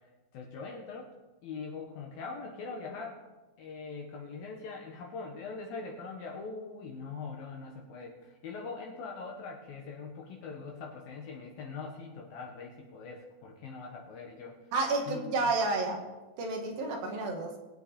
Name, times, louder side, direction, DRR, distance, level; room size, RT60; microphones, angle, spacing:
voice 1, 0.3-1.1 1.4-3.2 3.6-14.6 15.1-15.6, left 4 dB, 70° left, 0 dB, 2.3 m, -42 dB
voice 2, 14.7-16.0 16.4-17.6, right 3 dB, 60° right, 2 dB, 2.7 m, -30 dB
23.0 x 7.8 x 4.3 m, 1.2 s
omnidirectional pair, 5.8 m